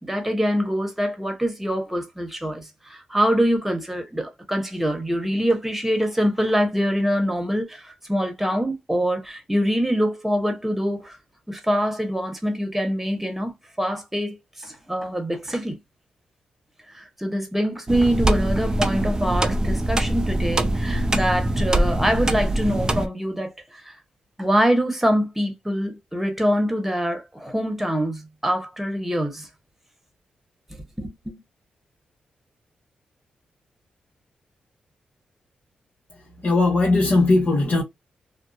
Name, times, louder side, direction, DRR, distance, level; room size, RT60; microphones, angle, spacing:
voice 1, 0.0-11.2 11.5-15.8 16.9-23.9 24.4-29.5 30.7-31.4, equal, 5° right, 1.1 m, -24 dB
sound 1, 17.9-23.1, right 1 dB, 25° right, 0.5 m, -23 dB
voice 2, 36.4-37.8, left 2 dB, 50° left, 1.0 m, -18 dB
2.6 x 2.0 x 2.4 m
cardioid pair, 65°, 3 cm